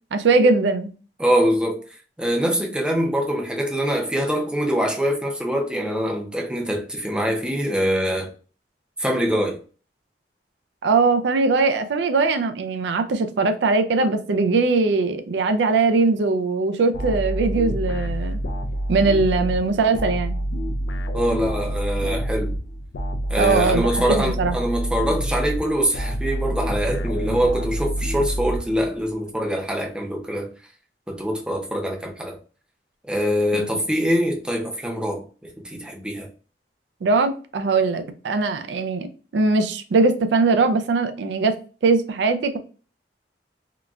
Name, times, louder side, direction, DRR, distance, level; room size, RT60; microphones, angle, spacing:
voice 1, 0.1-0.9 10.8-18.4 18.9-20.4 23.4-24.6 33.5-33.8 37.0-39.1 39.3-41.5 41.8-42.6, right 3 dB, 80° right, 0.4 m, -20 dB
voice 2, 1.2-1.8 2.2-8.3 9.0-9.6 21.1-22.5 23.3-30.5 31.1-32.4 33.1-35.2 35.6-36.3, equal, 5° right, 0.5 m, -24 dB
sound 1, 16.9-29.1, right 1 dB, 85° left, 0.4 m, -27 dB
3.8 x 2.2 x 2.3 m
head